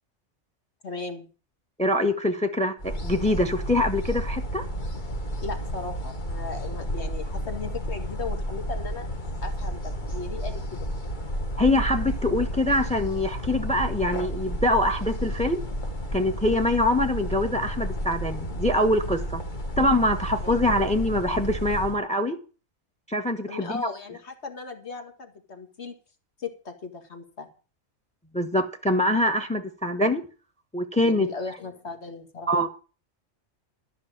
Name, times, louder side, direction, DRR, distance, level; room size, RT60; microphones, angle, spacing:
voice 1, 0.8-1.3 5.4-9.0 9.4-10.6 20.4-20.6 23.5-25.9 26.4-27.5 31.0-32.7, left 4 dB, 65° left, 2.3 m, -37 dB
voice 2, 1.8-4.6 11.6-15.6 16.1-19.4 19.8-22.4 23.1-23.9 28.3-30.2 30.7-31.3 32.5-32.7, left 1 dB, 5° left, 1.2 m, -24 dB
sound 1, 2.8-22.0, equal, 40° left, 1.6 m, -32 dB
13.5 x 5.9 x 8.8 m
omnidirectional pair, 1.2 m